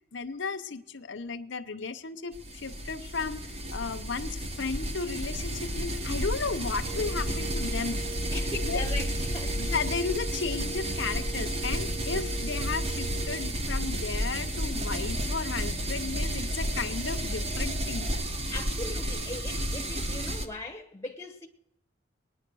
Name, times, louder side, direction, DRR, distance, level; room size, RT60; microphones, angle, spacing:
voice 1, 0.1-2.3 2.6-3.4 3.7-4.3 4.6-8.0 8.7-8.8 9.6-18.1, left 4 dB, 65° left, 0.8 m, -34 dB
sound 1, 2.3-20.5, equal, 30° right, 1.1 m, -32 dB
Wind instrument woodwind instrument, 6.8-13.6, right 7 dB, 50° right, 3.4 m, -42 dB
sound 2, 8.3-11.0, left 1 dB, 90° left, 1.0 m, -36 dB
voice 2, 8.3-9.6 18.5-21.5, left 2 dB, 15° left, 1.0 m, -39 dB
20.5 x 9.8 x 6.2 m
head